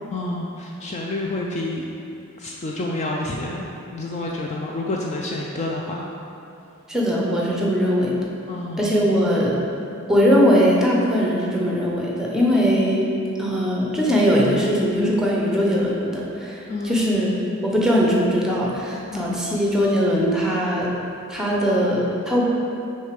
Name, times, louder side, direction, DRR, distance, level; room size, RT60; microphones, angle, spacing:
voice 1, 0.1-1.8 2.4-3.6 3.9-6.1 8.5-8.9 16.7-17.0 19.1-19.4, left 2 dB, 35° left, -1 dB, 0.4 m, -28 dB
voice 2, 6.9-8.2 8.8-9.6 10.1-13.1 13.4-20.9 21.3-22.4, equal, 5° right, -4 dB, 0.8 m, -20 dB
6.4 x 3.2 x 5.1 m, 2.7 s
head